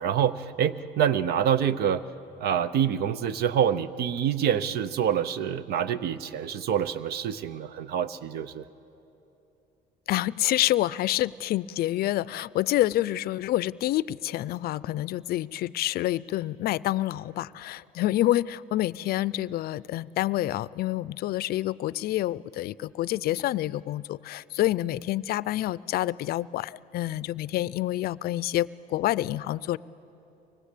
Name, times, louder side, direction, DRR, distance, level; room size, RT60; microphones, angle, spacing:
voice 1, 0.0-2.0 2.4-8.6, right 9 dB, 70° right, 15 dB, 0.8 m, -26 dB
voice 2, 10.1-29.8, left 15 dB, 65° left, 20 dB, 0.5 m, -28 dB
24.5 x 20.0 x 8.4 m, 2.9 s
cardioid pair, 110°, 17 cm